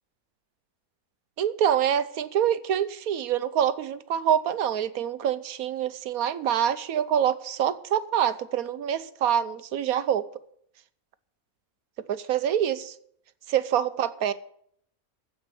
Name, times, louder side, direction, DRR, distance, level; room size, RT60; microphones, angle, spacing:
voice 1, 1.4-10.3 12.1-12.9 13.5-14.3, right 9 dB, 85° right, 1.2 m, -26 dB
15.0 x 5.2 x 9.7 m
omnidirectional pair, 1.5 m